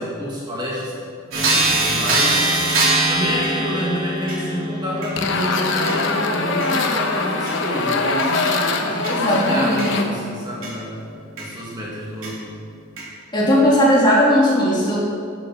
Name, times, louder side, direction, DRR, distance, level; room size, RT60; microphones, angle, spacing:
voice 1, 0.0-2.6 3.1-10.9 11.4-12.5, equal, 20° right, -5 dB, 1.7 m, -29 dB
sound 1, 1.3-10.7 11.4-11.5 12.2-12.3 13.0-13.1, right 2 dB, 65° right, 3.3 m, -24 dB
sound 2, 5.2-10.0, left 3 dB, 60° left, 1.0 m, -22 dB
voice 2, 9.1-10.1 13.3-15.0, equal, 20° left, -6 dB, 2.6 m, -17 dB
12.5 x 6.9 x 5.8 m, 2.4 s
head